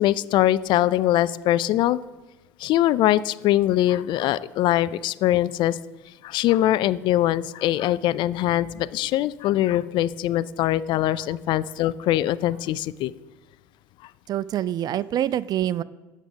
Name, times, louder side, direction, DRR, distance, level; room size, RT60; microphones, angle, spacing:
voice 1, 0.0-2.0 2.6-5.8 6.2-13.1 14.0-14.1, left 13 dB, 55° left, 16 dB, 0.4 m, -22 dB
voice 2, 14.3-15.8, right 11 dB, 45° right, 17 dB, 0.4 m, -26 dB
9.2 x 6.6 x 6.3 m, 1.1 s
hypercardioid pair, 75°, 10 cm